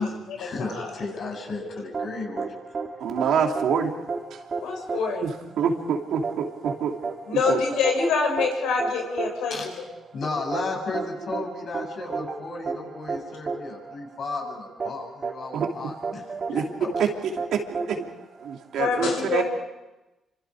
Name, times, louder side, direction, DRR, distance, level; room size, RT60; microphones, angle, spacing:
voice 1, 0.0-2.7 9.5-9.7 10.1-17.1, left 3 dB, 55° left, 1 dB, 8.0 m, -34 dB
voice 2, 0.6-0.9 4.6-5.3 7.3-9.5 18.7-19.4, left 5 dB, 90° left, 2 dB, 5.9 m, -25 dB
sound 1, 1.9-18.8, right 4 dB, 40° right, 2.9 m, -33 dB
voice 3, 3.0-3.9 5.2-5.3 5.6-6.9 7.5-7.6 15.5-15.7 16.5-16.6 17.0-17.1 17.5-17.6 17.9-18.1 18.4-19.4, right 7 dB, 75° right, 2 dB, 3.0 m, -25 dB
28.0 x 25.5 x 5.0 m, 1.0 s
cardioid pair, 90°, 0 cm